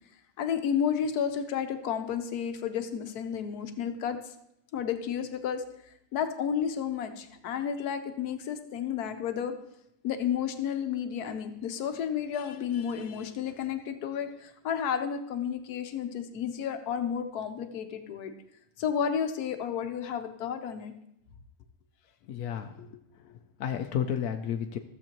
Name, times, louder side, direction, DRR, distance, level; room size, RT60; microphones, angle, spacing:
voice 1, 0.4-4.3 4.7-5.6 6.1-9.5 10.0-18.3 18.8-20.9, left 8 dB, 90° left, 8 dB, 1.3 m, -31 dB
voice 2, 22.3-24.8, left 9 dB, 75° left, 5 dB, 0.9 m, -33 dB
15.0 x 7.3 x 2.9 m, 0.79 s
omnidirectional pair, 1.6 m